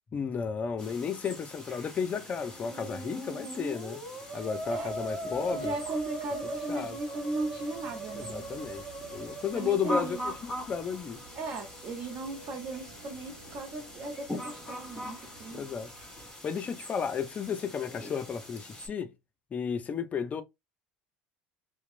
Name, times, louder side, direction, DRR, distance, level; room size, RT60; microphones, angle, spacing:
voice 1, 0.1-4.0 4.3-5.7 6.7-7.0 8.2-11.2 15.5-15.9 16.4-19.1 19.5-20.4, left 6 dB, 35° left, 0.4 m, -33 dB
sound 1, 0.8-18.9, equal, 10° left, 1.7 m, -43 dB
Musical instrument, 2.4-10.5, right 2 dB, 25° right, 1.8 m, -40 dB
sound 2, 4.5-16.3, right 2 dB, 80° right, 0.8 m, -54 dB
voice 2, 5.5-8.5 9.5-10.2 11.3-15.7, right 2 dB, 50° right, 0.7 m, -37 dB
2.9 x 2.0 x 2.4 m
hypercardioid pair, 75°, 4 cm